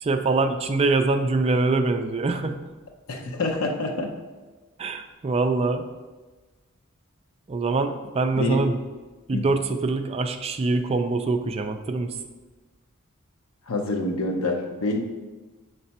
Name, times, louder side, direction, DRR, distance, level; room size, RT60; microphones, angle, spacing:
voice 1, 0.0-2.7 4.8-5.9 7.5-8.8 9.3-12.2, right 3 dB, 30° right, 7 dB, 0.4 m, -24 dB
voice 2, 3.1-4.1 8.4-8.6 9.3-9.4 13.7-15.0, left 2 dB, 85° left, 2 dB, 0.7 m, -26 dB
6.9 x 3.3 x 4.2 m, 1.3 s
head